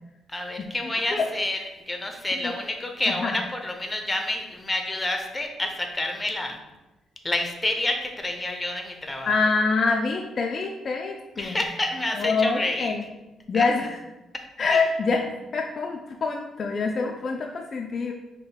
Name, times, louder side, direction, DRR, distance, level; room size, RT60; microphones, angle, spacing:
voice 1, 0.3-6.6 7.2-9.3 11.3-13.0 13.5-13.6 14.3-14.4 14.7-14.8, left 1 dB, 15° left, 3 dB, 0.7 m, -29 dB
voice 2, 3.1-3.4 9.3-11.6 12.2-13.0 13.5-13.9 14.6-15.2 15.5-18.1, left 4 dB, 45° left, 2 dB, 0.3 m, -25 dB
5.1 x 2.1 x 3.9 m, 1.0 s
cardioid pair, 90°, 0 cm